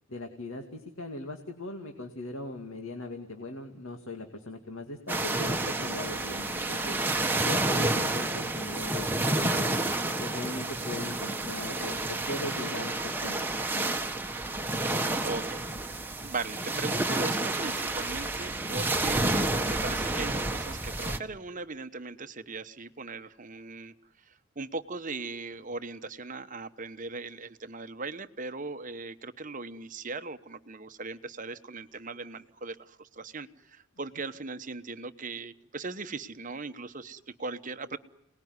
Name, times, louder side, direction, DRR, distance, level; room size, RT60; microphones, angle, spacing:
voice 1, 0.1-7.0 7.4-9.8 10.2-13.3, left 2 dB, 65° left, 4 dB, 2.4 m, -39 dB
sound 1, 5.1-21.2, right 2 dB, 10° right, 1.3 m, -30 dB
voice 2, 15.2-15.6 16.2-38.0, right 3 dB, 35° right, 10 dB, 1.0 m, -39 dB
29.0 x 20.0 x 9.7 m, 0.82 s
head